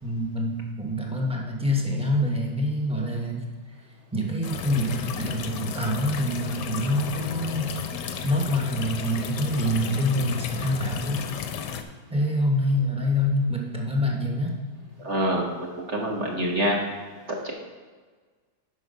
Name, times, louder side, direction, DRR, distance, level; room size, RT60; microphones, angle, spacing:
voice 1, 0.0-3.5 4.1-7.7 8.2-11.2 12.1-14.6, left 1 dB, 5° right, -2 dB, 0.7 m, -26 dB
sound 1, 4.4-11.8, left 7 dB, 70° left, 1.1 m, -34 dB
voice 2, 15.0-16.8 17.3-17.5, equal, 40° right, -1 dB, 1.3 m, -26 dB
8.2 x 5.8 x 5.5 m, 1.4 s
omnidirectional pair, 2.3 m